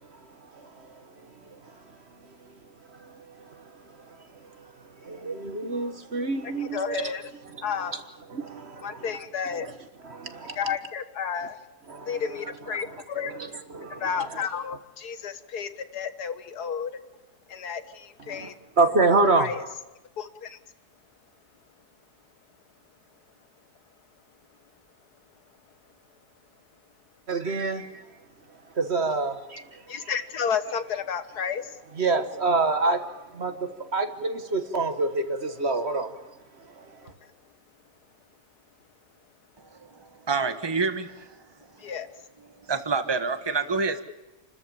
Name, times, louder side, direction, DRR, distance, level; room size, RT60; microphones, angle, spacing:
voice 1, 0.5-1.3 1.6-1.7 3.0-3.1 3.5-3.6 4.1-4.2 5.0-7.1 7.5-7.6 8.3-9.1 10.0-10.6 11.9-12.2 12.7-13.0 13.3-14.2 18.3-19.5 27.3-28.0 28.7-29.8 32.0-36.3 36.8-37.0, right 3 dB, 40° right, 9 dB, 1.6 m, -27 dB
voice 2, 6.6-7.2 7.6-8.0 8.8-9.7 10.6-11.6 12.1-13.3 14.0-16.9 17.5-18.5 19.1-19.6 20.2-20.6 29.9-31.8 41.8-42.1, left 7 dB, 65° left, 11 dB, 1.9 m, -32 dB
voice 3, 39.9-41.3 42.7-44.0, right 4 dB, 15° right, 9 dB, 1.3 m, -27 dB
28.5 x 13.5 x 8.8 m, 1.1 s
omnidirectional pair, 1.8 m